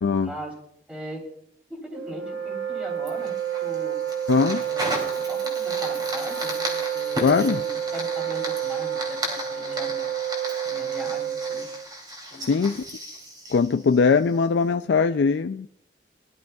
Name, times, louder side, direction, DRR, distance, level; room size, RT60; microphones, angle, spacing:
voice 1, 0.2-0.5 0.9-1.2 1.7-3.3 3.6-4.0 4.6-10.1 10.6-11.6 12.3-12.8, equal, 5° right, 3.5 m, -39 dB
Wind instrument woodwind instrument, 1.9-11.8, right 9 dB, 65° right, 0.9 m, -29 dB
Fire, 3.1-14.4, equal, 25° right, 2.8 m, -35 dB
voice 2, 4.3-4.6 7.2-7.6 12.4-12.8 13.5-15.7, left 5 dB, 75° left, 0.4 m, -21 dB
21.5 x 12.0 x 2.3 m
head